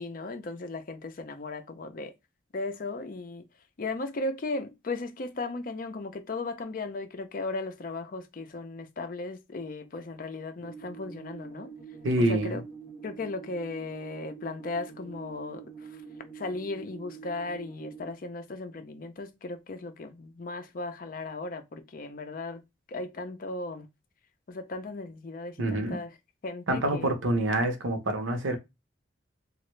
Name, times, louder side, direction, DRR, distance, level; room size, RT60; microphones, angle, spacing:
voice 1, 0.0-2.1 2.5-3.5 3.8-11.7 12.2-12.6 13.0-16.0 16.3-22.6 22.9-23.9 24.5-26.1 26.4-27.2, left 3 dB, 45° left, 0.5 m, -36 dB
sound 1, 10.6-18.1, right 6 dB, 10° right, 1.1 m, -45 dB
voice 2, 12.0-12.6 25.6-26.0 26.7-28.6, right 1 dB, 85° right, 0.8 m, -26 dB
3.0 x 2.4 x 3.1 m
head